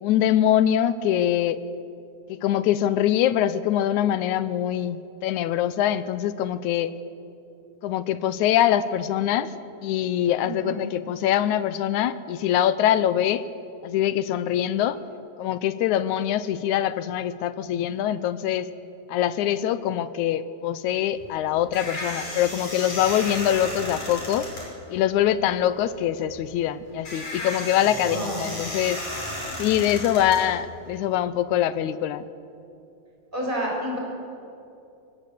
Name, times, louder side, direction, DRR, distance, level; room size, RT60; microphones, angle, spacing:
voice 1, 0.0-1.6 2.3-6.9 7.8-9.5 9.8-13.4 13.8-15.0 15.4-18.7 19.1-24.5 24.9-29.0 29.6-32.2, left 11 dB, 80° left, 14 dB, 2.2 m, -23 dB
voice 2, 10.4-10.8 27.9-28.4 33.3-34.0, equal, 15° right, -3 dB, 6.6 m, -29 dB
sound 1, 21.1-31.1, left 1 dB, 65° left, 7.0 m, -34 dB
24.0 x 19.5 x 8.3 m, 2.7 s
omnidirectional pair, 3.4 m